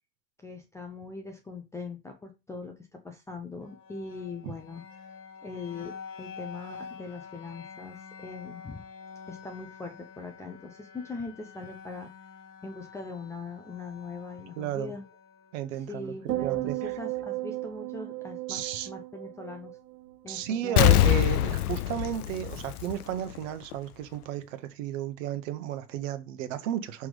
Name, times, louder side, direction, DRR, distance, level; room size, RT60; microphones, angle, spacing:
voice 1, 0.4-4.8 5.4-8.8 9.3-12.1 12.6-15.1 15.7-19.8 20.2-20.9 22.6-22.7, left 3 dB, 5° left, 0.5 m, -41 dB
sound 1, 3.6-17.6, left 6 dB, 40° left, 1.4 m, -48 dB
voice 2, 14.6-14.9 15.5-16.1 16.4-16.9 18.5-18.9 20.3-27.1, right 11 dB, 50° right, 1.1 m, -33 dB
sound 2, 16.3-20.7 21.0-21.4, right 16 dB, 70° right, 1.0 m, -35 dB
Explosion, 20.8-23.4 23.7-23.8, left 14 dB, 65° left, 0.6 m, -23 dB
6.0 x 3.6 x 4.8 m
figure-of-eight pair, 85°, 49 cm